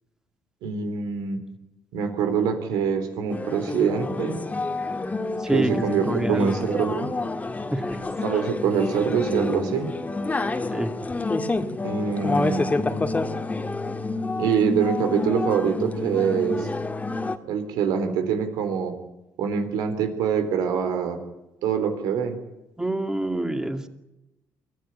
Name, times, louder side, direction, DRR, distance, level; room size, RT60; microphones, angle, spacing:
voice 1, 0.6-1.4 1.9-4.4 5.5-7.1 8.2-9.9 11.8-12.7 14.4-16.7 17.4-19.0 19.4-21.2 21.6-22.4, right 7 dB, 85° right, 8 dB, 3.7 m, -24 dB
sound 1, 3.3-17.4, left 3 dB, 20° left, 2.0 m, -28 dB
voice 2, 5.4-6.5 7.7-8.0 10.7-10.9 22.8-23.9, right 1 dB, 10° right, 7 dB, 2.7 m, -27 dB
24.0 x 15.5 x 10.0 m, 0.95 s
cardioid pair, 80°, 7 cm